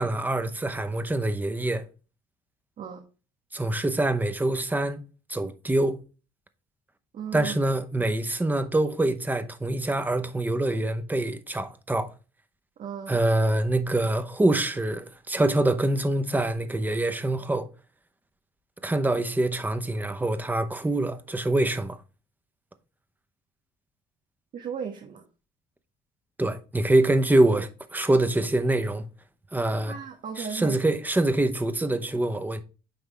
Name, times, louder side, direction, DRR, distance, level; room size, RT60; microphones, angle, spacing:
voice 1, 0.0-1.8 3.5-5.0 5.3-6.0 7.3-12.1 13.1-17.7 18.8-22.0 26.4-29.0 29.5-29.9 30.4-32.6, right 1 dB, 10° right, 0.8 m, -25 dB
voice 2, 7.1-7.6 12.8-13.2 24.5-25.2 29.7-30.8, right 7 dB, 50° right, 1.3 m, -36 dB
9.5 x 3.5 x 3.4 m
cardioid pair, 110°, 17 cm